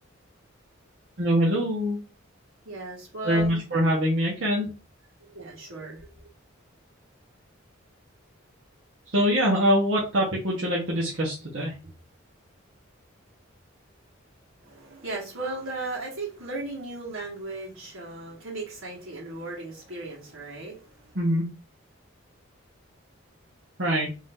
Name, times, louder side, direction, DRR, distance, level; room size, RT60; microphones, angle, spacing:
voice 1, 1.2-2.0 3.2-4.7 9.1-11.7 21.1-21.4 23.8-24.1, equal, 65° right, -5 dB, 1.2 m, -24 dB
voice 2, 2.6-3.6 5.3-6.2 14.6-21.2, right 2 dB, 85° right, -4 dB, 2.1 m, -36 dB
3.6 x 2.8 x 3.6 m, 0.31 s
head